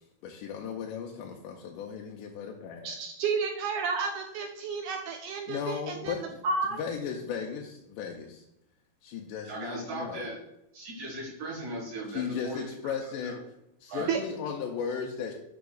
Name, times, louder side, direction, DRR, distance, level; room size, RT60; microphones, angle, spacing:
voice 1, 0.2-3.0 5.5-6.4 6.8-8.5 9.0-10.3 12.1-13.4 13.8-15.3, left 7 dB, 80° left, 1 dB, 2.1 m, -36 dB
voice 2, 2.8-6.8 14.1-14.2, right 5 dB, 85° right, 4 dB, 1.7 m, -31 dB
voice 3, 9.4-10.4 10.7-12.9 13.2-13.4 13.9-14.1, right 2 dB, 70° right, -5 dB, 3.3 m, -38 dB
11.5 x 5.1 x 2.3 m, 0.83 s
omnidirectional pair, 4.0 m